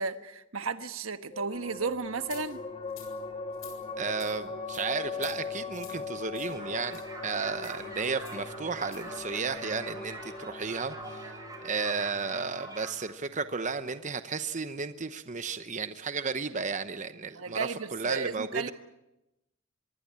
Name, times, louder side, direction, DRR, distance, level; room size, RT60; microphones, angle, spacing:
voice 1, 0.0-2.6 17.4-18.7, right 4 dB, 70° right, 10 dB, 1.4 m, -33 dB
sound 1, 1.3-14.2, left 4 dB, 30° left, 2.4 m, -41 dB
sound 2, 2.2-2.4 2.9-3.1 3.5-3.8 4.2-4.3 4.7-4.8 5.2-5.3 5.7-6.0 6.3-6.5 6.9-7.0 7.6-7.8 8.2-8.4 8.8-9.0, left 10 dB, 75° left, 7.4 m, -48 dB
voice 2, 4.0-11.4 11.6-18.7, right 4 dB, 35° right, 10 dB, 0.9 m, -33 dB
sound 3, 6.5-12.9, right 2 dB, 20° right, 5.5 m, -45 dB
25.0 x 22.5 x 8.6 m, 0.93 s
head